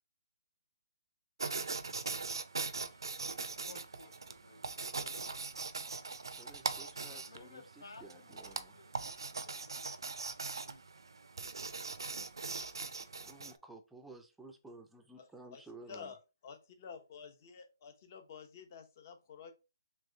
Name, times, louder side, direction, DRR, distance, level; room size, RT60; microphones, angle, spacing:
sound 1, 1.4-13.6, right 4 dB, 90° right, 0.5 m, -41 dB
voice 1, 3.6-5.4 6.9-10.0, left 3 dB, 85° left, 0.8 m, -57 dB
voice 2, 6.4-7.6 8.0-8.7 13.2-16.1, right 2 dB, 5° right, 0.4 m, -54 dB
voice 3, 15.2-15.6 15.9-16.2 16.4-19.5, left 6 dB, 40° left, 0.8 m, -50 dB
3.4 x 3.1 x 3.8 m
hypercardioid pair, 155°, 2 cm